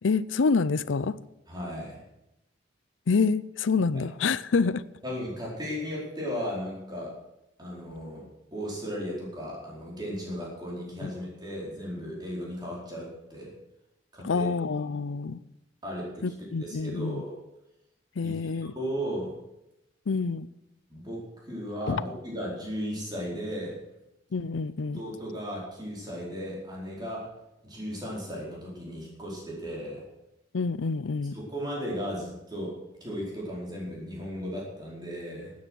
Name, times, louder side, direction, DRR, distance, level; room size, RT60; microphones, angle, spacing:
voice 1, 0.0-1.2 3.1-4.8 11.0-11.1 14.2-15.4 16.2-17.2 18.2-18.7 20.1-20.5 21.9-22.0 24.3-25.0 30.5-31.4, left 4 dB, 90° left, 18 dB, 0.5 m, -27 dB
voice 2, 1.5-2.0 5.0-7.1 7.6-8.2 8.5-13.5 14.1-14.5 15.8-16.2 16.6-17.3 18.2-18.3 18.6-19.3 20.9-23.7 24.9-27.3 27.6-30.0 31.3-32.7 33.0-35.5, equal, 20° right, -4 dB, 4.6 m, -35 dB
13.0 x 9.5 x 6.4 m, 0.91 s
head